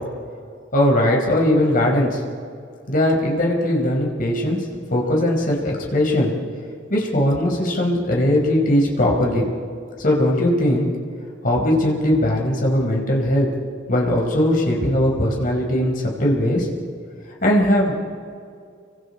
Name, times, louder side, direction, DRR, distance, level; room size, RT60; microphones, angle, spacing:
voice 1, 0.7-2.2 2.9-4.6 4.9-6.3 6.9-9.5 10.0-10.9 11.4-13.5 13.9-16.7 17.4-18.1, left 1 dB, 50° left, -1 dB, 4.9 m, -19 dB
30.0 x 24.5 x 4.4 m, 2.3 s
head